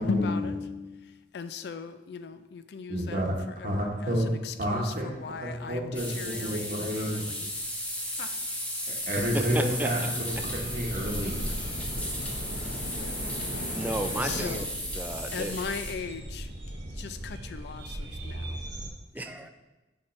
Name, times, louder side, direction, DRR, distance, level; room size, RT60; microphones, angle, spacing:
voice 1, 0.0-7.5 8.2-8.4 11.6-11.7 13.0-13.2 14.2-14.7 15.3-16.5 17.0-18.6 19.2-19.5, left 5 dB, 65° left, 11 dB, 0.4 m, -37 dB
voice 2, 2.9-3.3 3.6-4.3 4.6-5.1 5.4-7.2 8.9-10.4 10.7-11.5, equal, 50° right, -1 dB, 1.0 m, -30 dB
sound 1, 5.9-15.9, equal, 10° left, 0.8 m, -35 dB
voice 3, 9.2-9.9 13.7-14.6 14.9-15.6 19.1-19.5, right 1 dB, 10° right, 6 dB, 0.4 m, -33 dB
sound 2, 9.4-14.5, equal, 50° left, 1.1 m, -39 dB
sound 3, 10.3-18.9, right 1 dB, 85° right, 1.0 m, -39 dB
7.1 x 4.9 x 3.1 m, 1.1 s
head